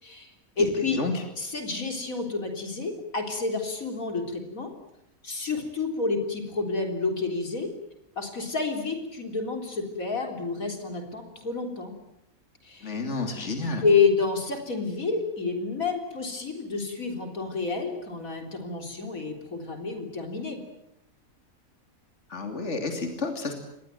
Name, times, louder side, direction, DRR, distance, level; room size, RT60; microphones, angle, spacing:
voice 1, 0.0-1.0 1.4-4.7 5.2-7.7 8.2-12.0 12.6-12.9 13.8-20.6, left 4 dB, 85° left, 4 dB, 4.2 m, -29 dB
voice 2, 0.9-1.2 12.8-13.8 22.3-23.5, left 3 dB, 55° left, 5 dB, 3.3 m, -30 dB
27.5 x 21.0 x 9.3 m, 0.84 s
omnidirectional pair, 1.4 m